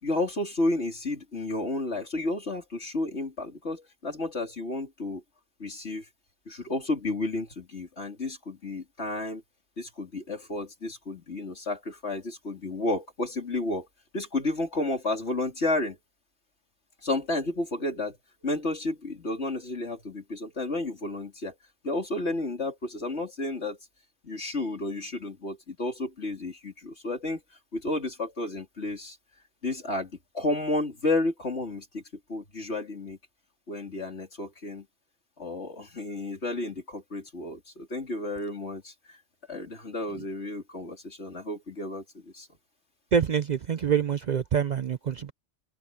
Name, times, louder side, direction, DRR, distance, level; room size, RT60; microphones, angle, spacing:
voice 1, 0.0-5.2 5.6-6.1 6.5-9.4 9.8-13.9 14.1-16.0 17.0-18.2 18.4-21.5 21.8-23.8 24.2-27.4 27.7-29.2 29.6-32.0 32.3-33.2 33.7-34.9 35.4-39.2 39.5-42.5, left 2 dB, 70° left, 3.9 m, -31 dB
voice 2, 43.1-45.3, right 7 dB, 50° right, 0.6 m, -26 dB
omnidirectional pair, 1.2 m